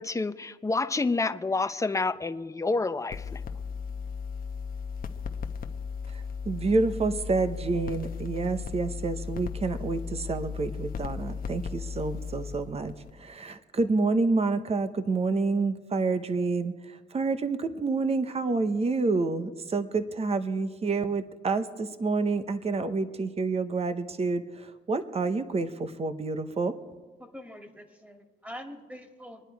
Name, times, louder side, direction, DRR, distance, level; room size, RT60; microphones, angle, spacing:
voice 1, 0.0-3.4, left 3 dB, 15° left, 11 dB, 0.7 m, -28 dB
sound 1, 3.1-13.3, left 6 dB, 45° left, 1.0 m, -36 dB
voice 2, 6.1-26.8, right 3 dB, 30° right, 11 dB, 0.9 m, -28 dB
voice 3, 27.2-29.4, equal, 5° right, 4 dB, 2.3 m, -44 dB
25.5 x 9.9 x 4.7 m, 1.3 s
cardioid pair, 90°, 20 cm